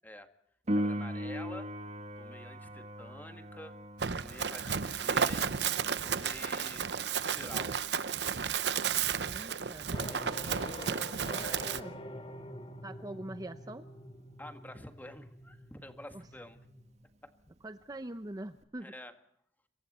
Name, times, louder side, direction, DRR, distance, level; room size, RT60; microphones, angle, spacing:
voice 1, 0.7-1.7 2.2-3.8 4.2-5.5 6.0-7.8 10.1-10.7 14.4-16.6 17.2-17.5 18.8-19.1, left 1 dB, 10° left, 7 dB, 1.7 m, -48 dB
Piano, 0.7-11.1 18.6-18.7, equal, 40° right, 1.9 m, -41 dB
Run, 4.0-11.8, right 7 dB, 75° right, 0.8 m, -33 dB
voice 2, 9.3-10.0 10.7-10.8 11.2-12.0 12.8-13.9 16.1-16.2 17.6-18.9, right 1 dB, 20° right, 10 dB, 0.7 m, -44 dB
sound 1, 9.9-16.9, left 1 dB, 30° left, 3.1 m, -46 dB
27.0 x 23.5 x 4.3 m, 0.73 s
head